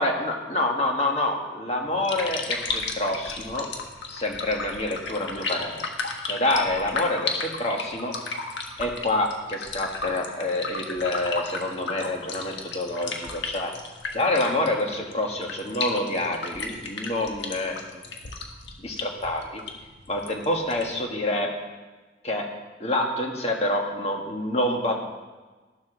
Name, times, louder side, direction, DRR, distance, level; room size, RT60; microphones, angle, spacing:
voice 1, 0.0-3.7 4.1-5.8 6.2-8.1 8.8-13.7 14.1-17.8 18.8-19.6 20.1-21.5 22.2-22.5 22.8-25.1, left 1 dB, 35° left, 1 dB, 1.5 m, -27 dB
sound 1, 1.9-21.0, left 4 dB, 80° left, 1.4 m, -34 dB
13.0 x 7.5 x 6.2 m, 1.3 s
head